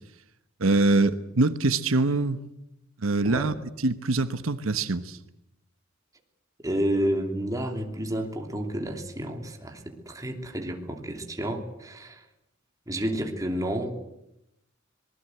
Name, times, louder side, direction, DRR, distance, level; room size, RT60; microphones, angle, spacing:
voice 1, 0.6-2.4 3.0-3.5 3.8-5.2, right 2 dB, 85° right, 11 dB, 1.2 m, -24 dB
voice 2, 6.6-12.2 12.9-13.9, right 1 dB, 15° right, 3 dB, 3.1 m, -30 dB
26.0 x 20.0 x 8.0 m, 0.85 s
head